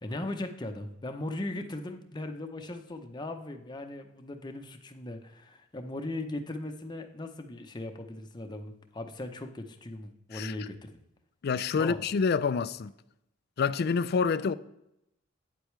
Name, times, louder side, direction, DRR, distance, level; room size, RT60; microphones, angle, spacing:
voice 1, 0.0-11.0 11.8-12.0, left 1 dB, 25° left, 0.7 m, -38 dB
voice 2, 11.4-12.9 13.6-14.5, left 5 dB, 55° left, 0.4 m, -27 dB
9.0 x 8.1 x 3.2 m
head